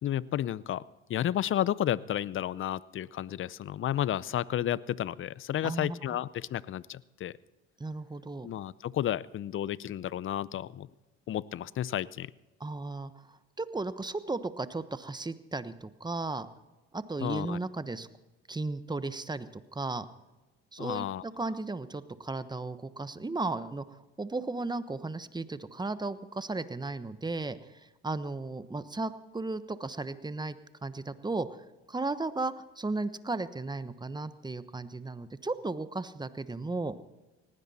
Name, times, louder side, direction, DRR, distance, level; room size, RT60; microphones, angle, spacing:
voice 1, 0.0-0.8 1.1-7.3 8.4-10.9 11.3-12.3 17.2-17.6 20.8-21.2, left 11 dB, 45° left, 21 dB, 0.6 m, -32 dB
voice 2, 5.6-6.2 7.8-8.5 12.6-16.5 16.9-18.1 18.5-20.1 20.7-27.6 28.0-30.6 30.8-31.5 31.9-36.9, right 3 dB, 15° right, 13 dB, 1.0 m, -35 dB
19.0 x 16.5 x 4.2 m, 1.1 s
supercardioid pair, 75°, 30 cm